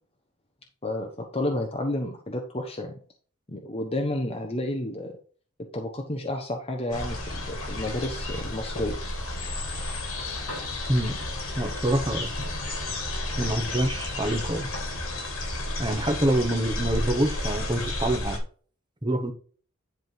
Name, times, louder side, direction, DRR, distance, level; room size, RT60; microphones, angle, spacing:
voice 1, 0.8-3.0 3.5-5.1 5.7-9.0, left 1 dB, 30° left, 2 dB, 1.0 m, -31 dB
sound 1, 6.9-18.4, left 1 dB, 80° left, 3.6 m, -32 dB
voice 2, 11.6-12.3 13.3-14.7 15.8-18.4 19.0-19.3, right 1 dB, 20° right, 4 dB, 1.3 m, -26 dB
11.0 x 3.6 x 4.7 m, 0.42 s
head